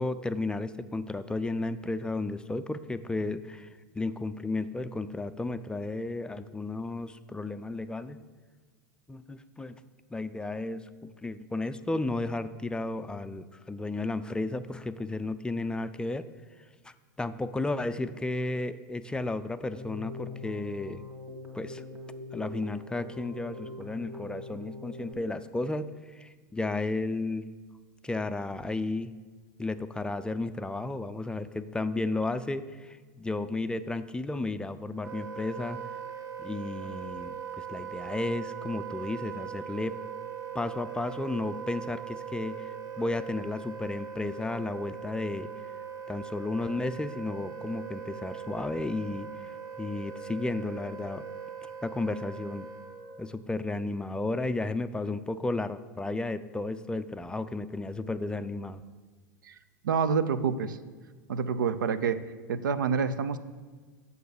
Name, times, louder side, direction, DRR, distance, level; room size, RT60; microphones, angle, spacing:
voice 1, 0.0-3.7 3.9-8.2 9.1-9.8 10.1-16.3 16.8-21.0 21.5-21.8 22.3-27.5 28.0-29.1 29.6-35.8 36.4-40.0 40.5-45.5 46.1-51.3 51.8-52.7 53.2-58.8, left 2 dB, 10° left, 11 dB, 0.3 m, -33 dB
Keyboard (musical), 19.7-25.1, left 3 dB, 20° right, 1.7 m, -43 dB
Wind instrument woodwind instrument, 35.0-53.2, right 7 dB, 70° right, 1.2 m, -40 dB
voice 2, 59.8-60.8 61.3-62.2 62.5-63.4, right 6 dB, 85° right, 13 dB, 0.5 m, -27 dB
6.8 x 6.7 x 6.6 m, 1.5 s
hypercardioid pair, 105°, 10 cm